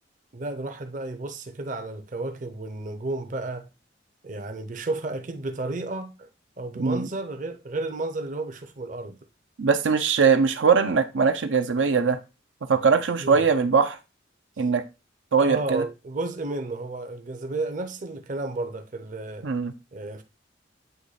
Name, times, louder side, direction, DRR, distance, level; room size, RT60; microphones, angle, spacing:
voice 1, 0.3-3.7 4.2-6.3 6.6-9.2 13.2-13.4 14.6-14.7 15.4-19.5 19.9-20.2, right 2 dB, 45° right, 0.7 m, -32 dB
voice 2, 9.6-12.2 12.7-14.0 14.6-14.8 15.3-15.8 19.4-19.7, right 5 dB, 85° right, 0.6 m, -21 dB
7.9 x 3.1 x 4.0 m
head